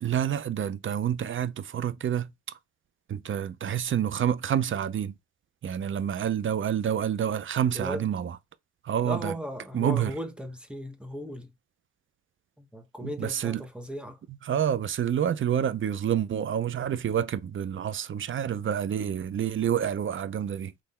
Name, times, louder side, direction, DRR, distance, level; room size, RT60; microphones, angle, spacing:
voice 1, 0.0-2.3 3.1-5.1 5.6-8.4 8.8-9.3 9.7-10.1 13.0-13.6 14.5-20.7, right 9 dB, 40° right, 0.6 m, -28 dB
voice 2, 7.7-8.1 9.0-11.5 12.6-14.2, equal, 5° right, 1.1 m, -37 dB
3.8 x 3.2 x 4.3 m
cardioid pair, 90°, 30 cm